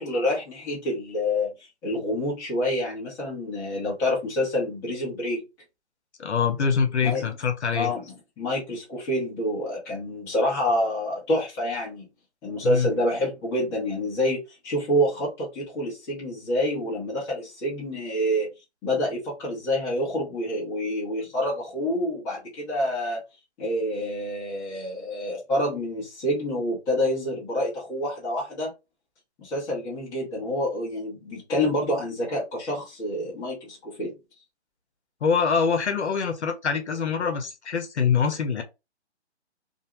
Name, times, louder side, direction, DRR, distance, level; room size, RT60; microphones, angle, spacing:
voice 1, 0.0-1.5 1.8-5.4 7.0-7.2 7.7-12.1 12.4-18.5 18.8-23.2 23.6-28.7 29.4-34.1, left 1 dB, 10° left, 0.7 m, -27 dB
voice 2, 6.2-7.9 12.6-12.9 35.2-38.6, left 6 dB, 75° left, 0.8 m, -24 dB
2.5 x 2.1 x 2.9 m
figure-of-eight pair, 145°, 34 cm